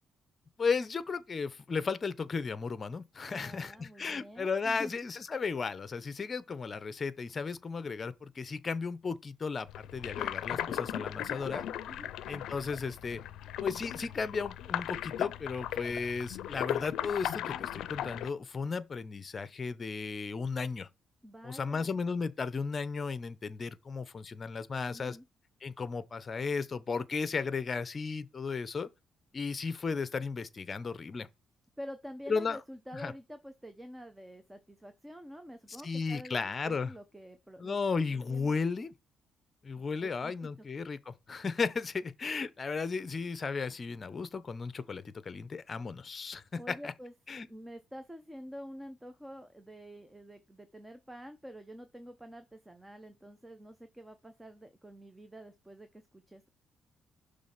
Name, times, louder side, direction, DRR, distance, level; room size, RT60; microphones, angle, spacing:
voice 1, 0.6-9.7 9.9-11.6 12.3-13.2 13.6-20.9 21.4-25.2 25.6-28.9 29.3-31.3 32.3-32.6 32.9-33.1 35.8-36.9 37.6-38.9 39.6-46.9 47.3-47.5, left 5 dB, 35° left, 0.8 m, -35 dB
voice 2, 3.3-4.9 11.9-12.1 21.2-22.0 24.9-25.3 31.8-37.8 38.1-38.6 39.7-40.7 46.6-47.1 47.5-56.5, equal, 10° right, 0.9 m, -48 dB
sound 1, 9.7-18.3, left 11 dB, 85° left, 0.5 m, -37 dB
6.3 x 3.3 x 5.6 m
cardioid pair, 90°, 0 cm